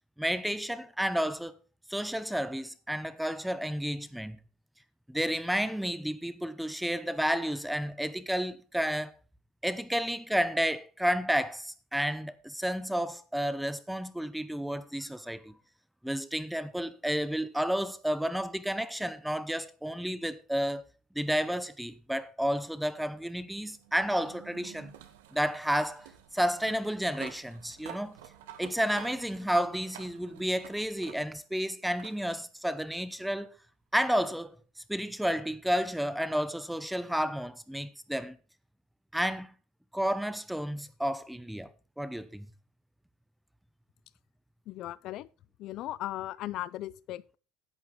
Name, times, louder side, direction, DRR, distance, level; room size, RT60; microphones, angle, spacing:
voice 1, 0.2-1.5 1.9-4.4 5.1-9.1 9.6-15.5 16.0-20.8 21.1-24.9 25.3-28.2 28.6-33.6 33.9-34.6 34.9-38.4 39.1-39.5 39.9-41.7 42.0-42.5, equal, ahead, 0.9 m, -31 dB
sound 1, 22.6-31.5 32.0-32.2 33.5-33.6 36.5-36.6, right 10 dB, 90° right, 1.7 m, -51 dB
voice 2, 44.7-45.3 45.6-47.4, left 15 dB, 55° left, 0.6 m, -37 dB
11.0 x 8.8 x 3.9 m
supercardioid pair, 115°, 0 cm